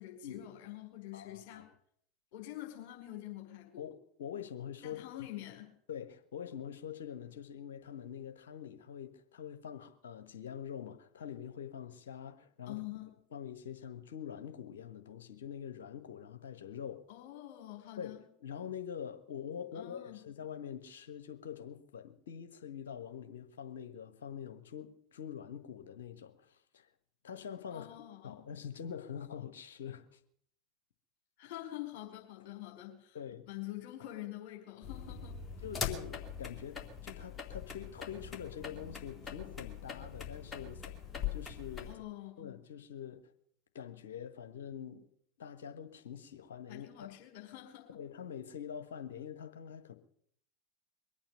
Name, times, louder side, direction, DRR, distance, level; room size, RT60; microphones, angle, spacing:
voice 1, 0.0-1.7 2.3-3.9 4.8-5.7 12.7-13.1 17.1-18.2 19.7-20.2 27.7-28.4 31.4-33.2 33.5-35.4 41.9-42.6 46.7-48.0, left 15 dB, 55° left, 5.2 m, -46 dB
voice 2, 1.1-1.6 3.8-5.3 5.9-12.8 13.3-17.0 18.0-18.1 18.4-26.9 27.2-27.9 28.2-30.2 33.1-33.5 35.6-41.0 41.3-42.0 42.4-43.2 43.7-45.1 45.4-47.2 47.9-49.9, left 8 dB, 70° left, 1.4 m, -45 dB
sound 1, 34.8-41.9, left 7 dB, 25° left, 2.6 m, -42 dB
22.5 x 8.9 x 6.8 m
figure-of-eight pair, 80°, 0 cm